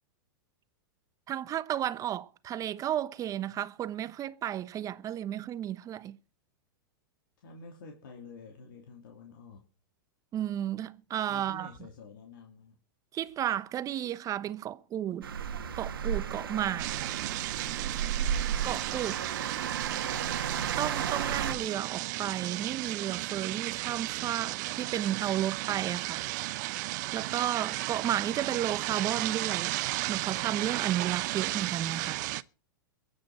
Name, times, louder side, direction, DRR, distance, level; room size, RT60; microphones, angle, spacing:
voice 1, 1.3-6.2 10.3-11.7 13.1-15.3 15.8-16.9 18.6-19.2 20.8-26.3 26.6-26.8 27.1-29.8 30.1-32.2, right 11 dB, 30° right, 1.0 m, -33 dB
voice 2, 7.4-9.6 11.3-12.8 31.1-31.7, left 4 dB, 70° left, 3.1 m, -49 dB
sound 1, 15.2-21.5, right 8 dB, 80° right, 1.9 m, -33 dB
sound 2, 16.8-32.4, right 20 dB, 55° right, 0.7 m, -34 dB
23.0 x 8.7 x 4.3 m
hypercardioid pair, 105°, 12 cm